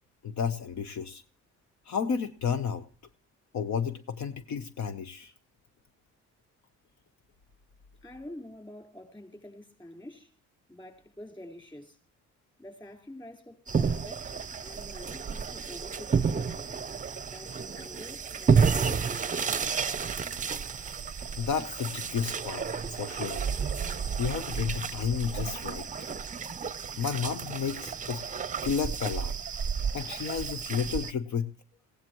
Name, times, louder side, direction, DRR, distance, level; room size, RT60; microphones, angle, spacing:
voice 1, 0.2-1.2 1.9-2.8 3.5-5.3 21.4-23.4 24.2-25.9 27.0-28.2 28.6-29.3 29.9-31.5, left 7 dB, 65° left, 0.9 m, -32 dB
voice 2, 8.0-10.3 10.7-12.0 12.6-14.3 14.6-16.7 17.2-19.8, left 1 dB, 15° left, 4.3 m, -47 dB
sound 1, 13.7-31.1, right 6 dB, 25° right, 0.6 m, -31 dB
20.5 x 16.5 x 3.1 m
cardioid pair, 90°, 30 cm